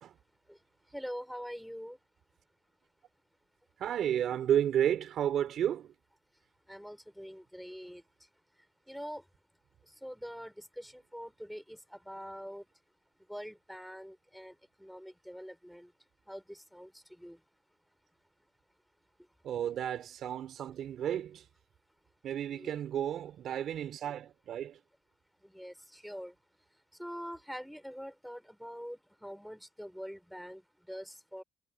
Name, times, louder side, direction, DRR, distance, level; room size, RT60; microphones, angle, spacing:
voice 1, 0.9-2.0 6.7-8.0 8.9-9.3 9.8-12.6 13.3-15.9 16.3-17.4 19.2-19.3 22.5-22.7 25.4-26.4 26.9-31.4, equal, ahead, 3.9 m, -45 dB
voice 2, 3.8-5.9 19.4-21.4 22.2-24.8, right 10 dB, 70° right, 4.1 m, -32 dB
cardioid pair, 90°, 0 cm